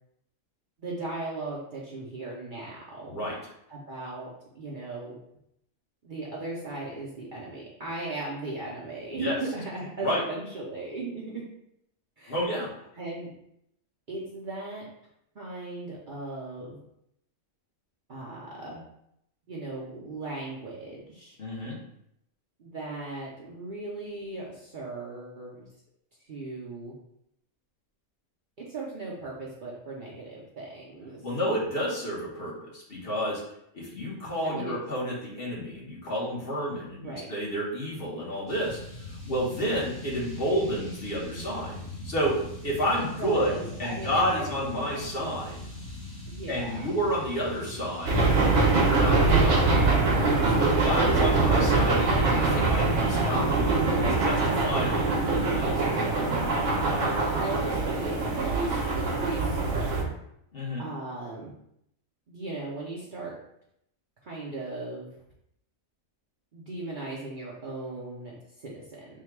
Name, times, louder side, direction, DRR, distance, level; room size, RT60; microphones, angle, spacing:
voice 1, 0.8-3.2 3.7-5.2 6.0-11.4 12.2-12.4 13.0-13.3 14.1-14.8 15.3-16.8 18.1-18.8 19.5-21.4 22.6-25.7 26.3-26.9 28.6-31.6 34.4-34.8 37.0-37.3 42.9-45.4 46.3-46.9 51.4-51.8 56.0-56.4 57.4-60.0 60.8-61.5 62.3-63.3 64.2-65.1 66.5-69.1, right 2 dB, 45° right, -5 dB, 0.7 m, -37 dB
voice 2, 3.1-3.4 9.1-9.4 10.0-10.2 12.3-12.7 21.4-21.8 31.2-33.4 33.7-38.8 39.1-41.8 42.0-42.3 42.6-45.6 46.5-48.2 48.7-49.7 50.5-53.8 54.0-56.1 60.5-60.9, equal, 45° left, -5 dB, 1.1 m, -30 dB
sound 1, 38.5-48.9, left 1 dB, 70° left, 1.9 m, -41 dB
sound 2, 48.1-60.0, right 3 dB, 65° right, 1.1 m, -23 dB
3.6 x 2.2 x 4.5 m, 0.76 s
omnidirectional pair, 1.4 m